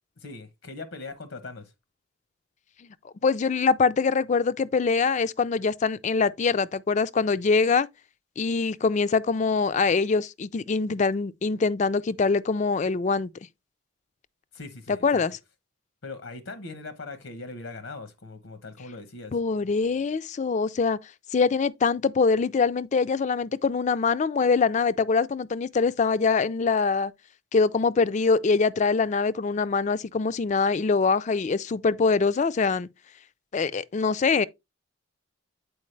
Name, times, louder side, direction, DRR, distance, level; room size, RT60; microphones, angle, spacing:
voice 1, 0.2-1.7 14.5-15.2 16.0-19.4, left 3 dB, 80° left, 0.9 m, -40 dB
voice 2, 3.0-7.9 8.4-13.3 14.9-15.4 19.3-21.0 21.3-27.1 27.5-32.9 33.5-34.5, left 4 dB, 35° left, 0.3 m, -24 dB
8.4 x 4.6 x 3.2 m
head